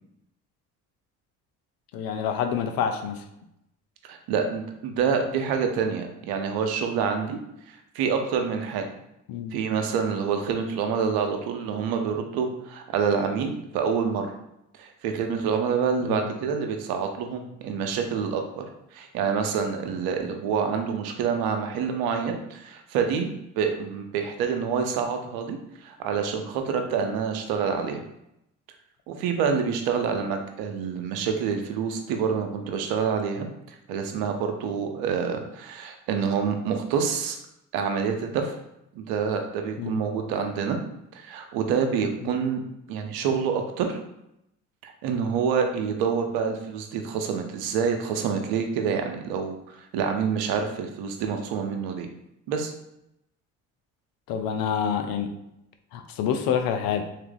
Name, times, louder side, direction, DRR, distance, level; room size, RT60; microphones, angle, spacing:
voice 1, 1.9-3.2 9.3-9.6 16.0-16.3 39.8-40.0 54.3-55.3 55.9-57.1, left 7 dB, 75° left, 6 dB, 0.6 m, -27 dB
voice 2, 4.1-7.4 7.7-8.9 9.5-14.3 14.8-18.6 18.9-23.3 23.6-28.0 29.1-33.5 33.9-37.4 37.7-38.5 38.9-40.8 41.1-42.6 42.9-44.0 44.8-52.1 52.5-52.7, right 6 dB, 75° right, 5 dB, 0.7 m, -27 dB
3.5 x 2.7 x 3.9 m, 0.84 s
supercardioid pair, 65°, 36 cm